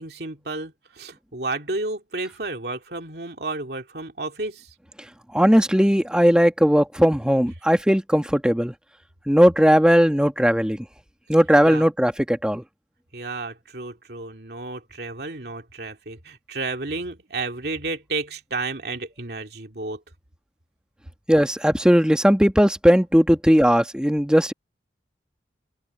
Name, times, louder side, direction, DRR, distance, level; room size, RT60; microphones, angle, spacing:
voice 1, 0.0-4.7 11.6-11.9 13.1-20.0, right 3 dB, 60° right, 2.6 m, -32 dB
voice 2, 5.3-8.7 9.3-10.8 11.3-12.6 21.3-24.5, equal, 5° right, 1.2 m, -18 dB
open air
head